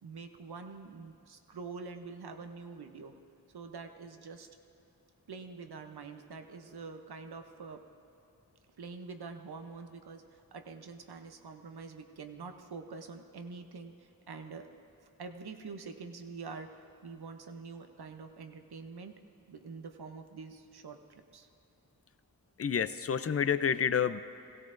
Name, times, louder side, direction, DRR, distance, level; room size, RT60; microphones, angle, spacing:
voice 1, 0.0-3.1 3.5-4.5 5.3-7.8 8.8-14.7 15.2-19.2 19.5-21.5, right 4 dB, 90° right, 6 dB, 0.8 m, -46 dB
voice 2, 22.6-24.2, left 7 dB, 40° left, 13 dB, 0.5 m, -29 dB
17.5 x 16.5 x 2.6 m, 2.7 s
cardioid pair, 45°, 37 cm